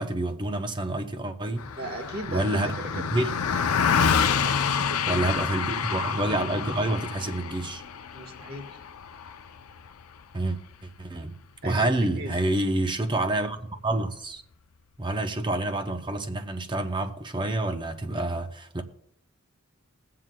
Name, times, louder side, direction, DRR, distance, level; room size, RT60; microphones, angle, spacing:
voice 1, 0.0-1.7 2.3-3.3 5.1-7.8 10.3-14.4 15.0-18.8, right 2 dB, 20° right, 0.7 m, -28 dB
Car passing by, 1.6-11.2, left 7 dB, 80° left, 0.5 m, -28 dB
voice 2, 1.8-3.0 4.0-5.3 8.1-8.8 11.6-12.7, right 1 dB, 45° right, 1.4 m, -38 dB
22.0 x 7.5 x 2.2 m
head